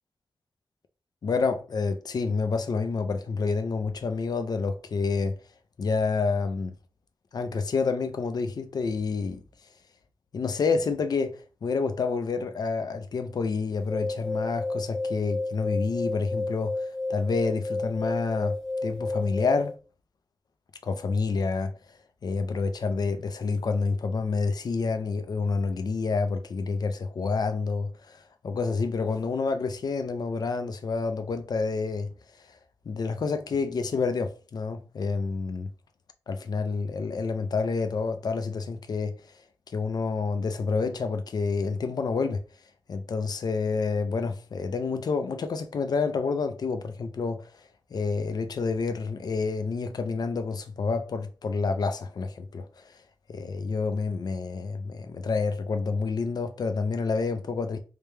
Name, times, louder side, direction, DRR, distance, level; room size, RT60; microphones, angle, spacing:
voice 1, 1.2-5.4 5.8-6.7 7.3-9.4 10.3-18.5 18.8-19.7 20.8-21.7 22.2-32.1 32.9-35.7 36.3-39.1 39.7-42.4 42.9-47.5 47.9-52.7 53.3-57.8, left 4 dB, 65° left, 0.5 m, -28 dB
sound 1, 13.8-19.8, left 2 dB, 5° left, 0.8 m, -31 dB
3.3 x 2.9 x 3.4 m
wide cardioid pair, 160°, 7 cm